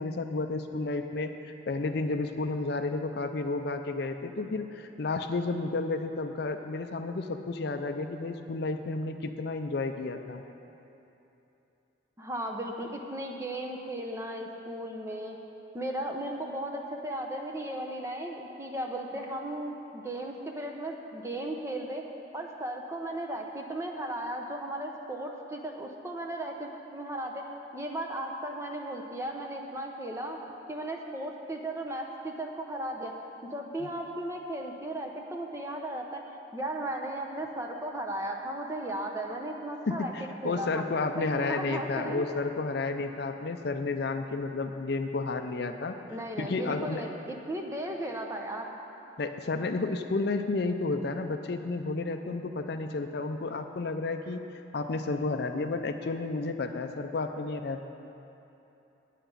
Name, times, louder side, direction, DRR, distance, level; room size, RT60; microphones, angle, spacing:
voice 1, 0.0-1.3 1.7-10.4 33.8-33.9 39.9-46.0 46.4-47.0 49.2-54.4 54.7-57.8, left 3 dB, 55° left, 7 dB, 0.4 m, -31 dB
voice 2, 12.2-15.4 15.7-22.0 22.3-27.5 27.7-30.4 30.7-33.1 33.4-36.2 36.5-40.8 41.2-42.3 46.1-48.7 49.0-49.1, right 1 dB, 15° right, 1 dB, 0.7 m, -36 dB
9.1 x 5.8 x 8.2 m, 2.9 s
head